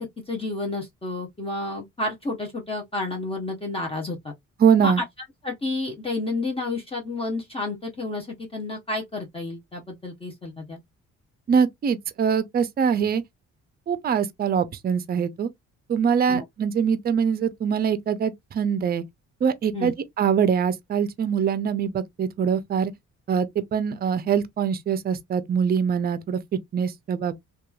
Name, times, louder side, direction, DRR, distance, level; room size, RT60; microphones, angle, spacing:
voice 1, 0.0-4.3 4.8-5.0 5.4-10.8 16.3-16.4 19.7-19.9, left 2 dB, 20° left, 0.7 m, -30 dB
voice 2, 4.6-5.0 11.5-13.2 13.9-15.5 15.9-19.0 19.4-22.9 23.3-26.4 26.7-27.4, right 7 dB, 30° right, 0.4 m, -23 dB
2.8 x 2.3 x 2.3 m
cardioid pair, 90°, 30 cm